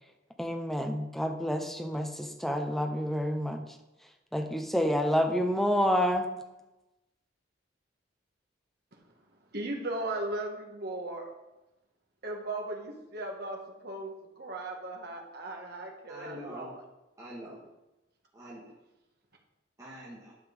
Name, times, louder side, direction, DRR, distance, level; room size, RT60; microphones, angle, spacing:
voice 1, 0.4-3.6 4.3-6.3, equal, ahead, 5 dB, 0.9 m, -28 dB
voice 2, 9.5-11.3 12.2-16.8, right 2 dB, 55° right, 1 dB, 1.9 m, -37 dB
voice 3, 16.1-16.7 17.2-17.6 18.3-18.7 19.8-20.3, equal, 15° right, -7 dB, 2.1 m, -44 dB
11.5 x 5.5 x 5.4 m, 0.99 s
head